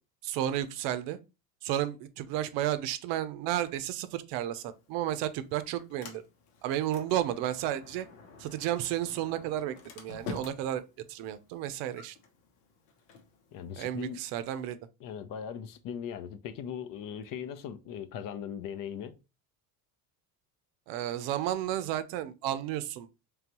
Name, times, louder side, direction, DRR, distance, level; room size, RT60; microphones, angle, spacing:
voice 1, 0.2-1.2 1.6-6.2 6.6-8.1 8.4-10.8 11.1-12.2 13.8-14.8 20.9-23.1, right 12 dB, 75° right, 0.7 m, -32 dB
Sliding door, 4.7-14.7, left 4 dB, 90° left, 1.0 m, -49 dB
voice 2, 13.5-14.2 15.0-19.2, left 8 dB, 50° left, 0.6 m, -39 dB
3.8 x 3.4 x 2.9 m
cardioid pair, 125°, 44 cm